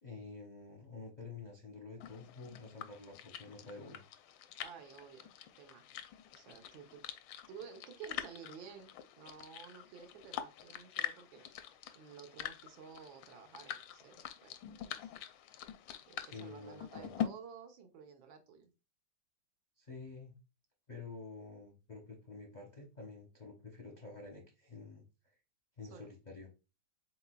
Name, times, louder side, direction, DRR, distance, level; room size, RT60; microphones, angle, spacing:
voice 1, 0.0-4.0 16.2-17.2 19.8-20.3 20.9-25.0 25.8-26.5, left 3 dB, 45° left, 1 dB, 0.5 m, -49 dB
sound 1, 2.0-17.3, left 11 dB, 85° left, 1.3 m, -45 dB
voice 2, 4.6-5.3 5.6-5.8 6.4-7.0 7.5-11.4 11.9-15.1 16.1-18.7 25.9-26.1, right 7 dB, 85° right, 5 dB, 1.7 m, -52 dB
4.7 x 4.0 x 2.3 m, 0.29 s
omnidirectional pair, 2.1 m